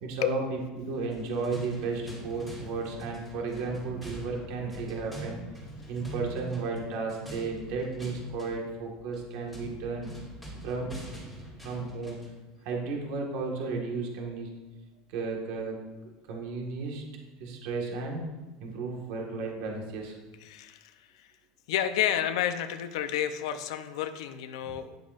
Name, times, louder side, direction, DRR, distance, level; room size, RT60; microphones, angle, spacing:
voice 1, 0.0-5.4 5.9-10.1 10.6-10.9 11.6-12.2 12.6-14.5 15.1-17.0 17.4-18.2 18.6-20.1 24.6-24.7, right 4 dB, 50° right, 0 dB, 1.8 m, -34 dB
sound 1, 1.0-12.4, right 1 dB, 5° right, 2.3 m, -44 dB
voice 2, 20.4-21.3 21.7-25.0, left 10 dB, 85° left, 8 dB, 0.8 m, -30 dB
11.5 x 10.5 x 2.6 m, 1.1 s
cardioid pair, 180°, 3 cm